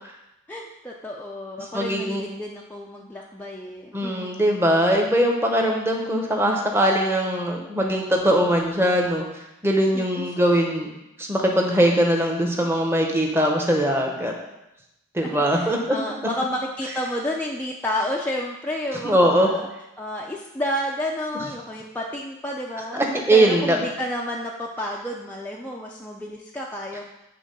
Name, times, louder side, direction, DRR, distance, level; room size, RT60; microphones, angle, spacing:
voice 1, 0.5-4.3 9.9-10.3 15.2-19.7 20.0-23.0 23.3-27.0, left 1 dB, 10° left, -3 dB, 0.4 m, -31 dB
voice 2, 1.7-2.2 3.9-9.2 9.6-10.9 11.2-14.3 15.1-15.8 19.0-19.5 22.9-23.8, right 1 dB, 10° right, 1 dB, 0.9 m, -21 dB
8.6 x 3.6 x 5.4 m, 0.90 s
head